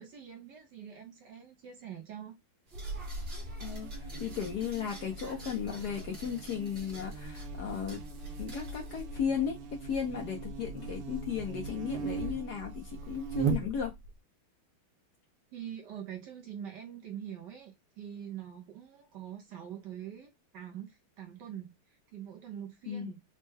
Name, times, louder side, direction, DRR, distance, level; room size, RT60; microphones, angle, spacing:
voice 1, 0.0-2.3 15.5-21.8 22.1-23.2, right 9 dB, 65° right, 1.1 m, -44 dB
sound 1, 2.7-9.0, right 2 dB, 40° right, 1.0 m, -50 dB
Buzz, 2.7-14.1, right 4 dB, 90° right, 1.7 m, -39 dB
voice 2, 3.6-8.0 8.4-14.0 22.9-23.1, left 7 dB, 65° left, 1.0 m, -35 dB
4.2 x 2.2 x 3.3 m
omnidirectional pair, 2.4 m